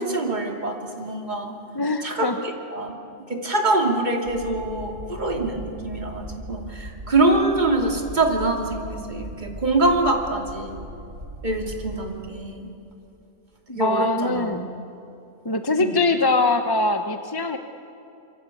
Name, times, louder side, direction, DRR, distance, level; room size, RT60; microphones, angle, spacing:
voice 1, 0.0-1.5 2.0-2.9 3.3-10.8 11.4-12.7 13.7-14.7 15.8-15.9, right 2 dB, 35° right, 1 dB, 3.0 m, -24 dB
voice 2, 1.7-2.3 13.7-14.7 15.4-17.6, left 2 dB, 20° left, 7 dB, 1.0 m, -22 dB
sound 1, 4.2-12.0, equal, 75° right, 3.2 m, -39 dB
26.5 x 25.0 x 8.5 m, 2.8 s
omnidirectional pair, 1.3 m